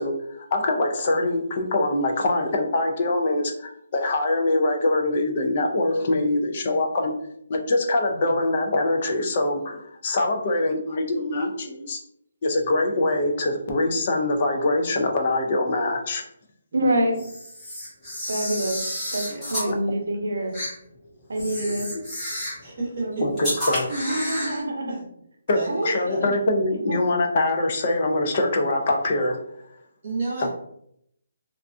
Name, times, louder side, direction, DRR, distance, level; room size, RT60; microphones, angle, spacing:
voice 1, 0.0-7.1 7.5-12.0 12.4-16.2 19.7-19.8 21.7-21.8 23.2-23.8 25.5-29.4 30.4-30.5, left 2 dB, 30° left, 3 dB, 0.3 m, -24 dB
voice 2, 16.7-17.2 18.3-18.8 19.1-20.5 21.3-21.9 23.0-23.5 23.9-25.0 25.7-25.9 26.2-26.3 26.9-27.0, right 1 dB, 75° right, 2 dB, 0.6 m, -26 dB
Camera, 17.1-19.7 20.5-20.7 21.3-22.6 23.4-24.6, equal, 10° left, 0.8 m, -31 dB
voice 3, 19.3-19.6 22.6-23.1 23.3-23.4 24.9-25.1 25.5-26.2 30.0-30.5, right 2 dB, 40° right, -6 dB, 0.8 m, -31 dB
2.3 x 2.2 x 2.4 m, 0.72 s
hypercardioid pair, 180°, 0 cm